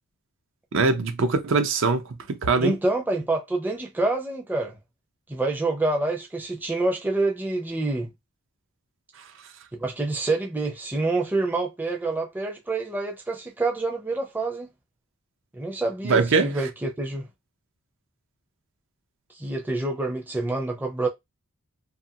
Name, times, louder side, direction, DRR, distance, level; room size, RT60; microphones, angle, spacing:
voice 1, 0.7-2.8 16.0-16.5, right 4 dB, 60° right, 0.5 m, -22 dB
voice 2, 2.6-4.8 5.3-8.1 9.7-14.7 15.5-17.3 19.4-21.1, right 2 dB, 10° right, 0.5 m, -27 dB
2.6 x 2.5 x 2.7 m
head